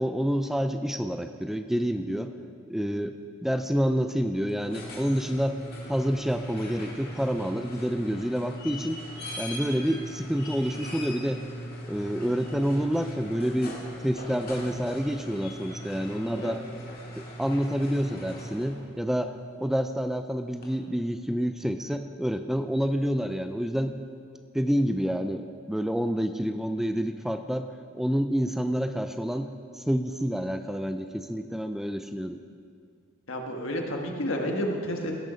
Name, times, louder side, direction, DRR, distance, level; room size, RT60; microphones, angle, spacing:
voice 1, 0.0-2.3 2.7-3.1 3.4-5.6 5.9-9.0 9.4-11.4 11.9-13.8 14.0-16.6 17.2-24.0 24.5-27.7 27.9-29.5 29.8-32.4, equal, ahead, 8 dB, 0.3 m, -28 dB
Squeaky Garage Door Open, 4.5-18.9 20.6-20.7, equal, 50° left, 2.0 m, -40 dB
voice 2, 33.3-35.1, equal, 85° left, 1 dB, 1.4 m, -30 dB
17.0 x 6.6 x 5.0 m, 2.2 s
head